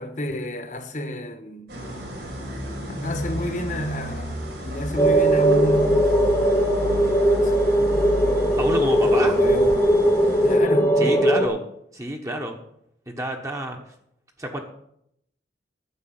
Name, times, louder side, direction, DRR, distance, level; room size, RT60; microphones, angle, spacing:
voice 1, 0.0-1.7 3.0-6.1 7.4-7.7 9.1-9.9 10.4-11.0, equal, 45° left, 1.3 m, -30 dB
sound 1, 1.7-10.6, equal, 70° right, 5.2 m, -32 dB
sound 2, 5.0-11.5, right 1 dB, 15° left, 1.1 m, -19 dB
voice 2, 8.6-9.4 11.0-11.6 11.9-12.6 13.1-13.8 14.4-14.6, right 1 dB, 15° right, 1.2 m, -28 dB
9.9 x 7.6 x 7.8 m
head